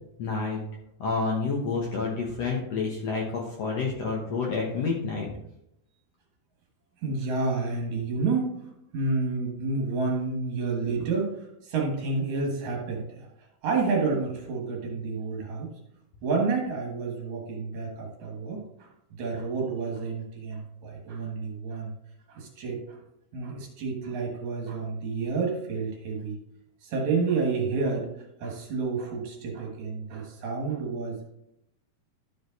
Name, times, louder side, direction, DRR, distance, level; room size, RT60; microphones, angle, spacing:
voice 1, 0.2-0.6 1.0-5.3, left 4 dB, 65° left, -2 dB, 1.7 m, -29 dB
voice 2, 7.0-8.6 8.9-13.3 13.6-15.7 16.2-21.9 22.3-23.0 23.3-26.4 26.8-28.1 28.4-31.3, right 4 dB, 60° right, 0 dB, 2.5 m, -30 dB
12.5 x 5.0 x 4.0 m, 0.81 s
omnidirectional pair, 4.2 m